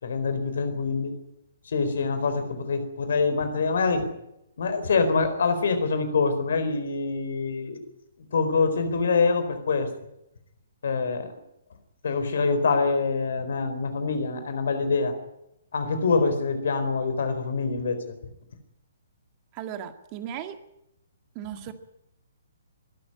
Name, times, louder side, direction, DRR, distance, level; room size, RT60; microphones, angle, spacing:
voice 1, 0.0-1.2 1.7-4.1 4.6-7.8 8.3-9.9 10.8-11.4 12.0-15.1 15.7-18.0, left 4 dB, 60° left, 10 dB, 4.2 m, -25 dB
voice 2, 19.5-20.6 21.4-21.7, right 10 dB, 30° right, 9 dB, 2.0 m, -36 dB
23.0 x 13.5 x 10.0 m, 0.83 s
figure-of-eight pair, 125°, 0 cm